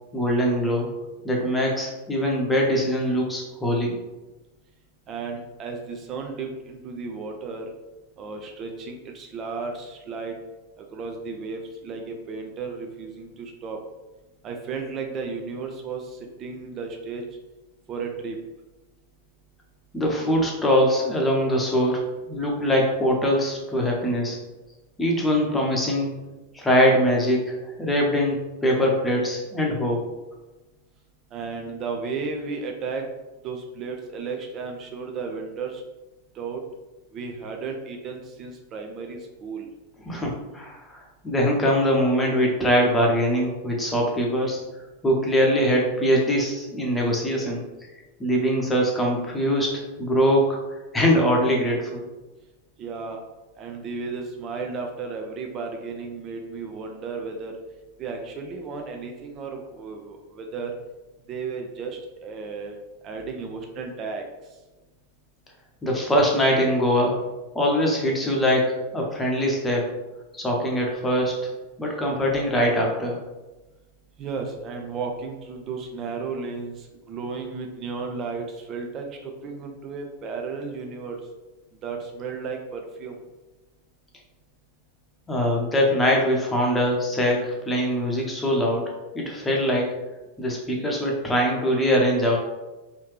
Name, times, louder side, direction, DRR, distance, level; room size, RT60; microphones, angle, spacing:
voice 1, 0.1-0.9 1.2-4.0 19.9-24.4 25.0-26.1 26.5-30.0 40.0-44.6 45.0-47.6 48.2-50.6 50.9-52.0 65.8-67.2 67.5-69.9 70.3-71.4 71.8-73.2 85.3-89.9 90.4-92.4, equal, 10° left, -1 dB, 0.8 m, -22 dB
voice 2, 5.1-7.7 8.2-10.4 10.8-13.8 14.4-17.2 17.9-18.4 31.3-33.1 33.4-35.8 36.3-36.6 37.1-39.7 52.8-53.2 53.6-57.6 58.0-60.8 61.3-62.7 63.0-64.2 74.2-81.2 81.8-83.2, right 4 dB, 30° right, 3 dB, 0.4 m, -34 dB
3.2 x 2.7 x 3.3 m, 1.1 s
figure-of-eight pair, 90°, 0 cm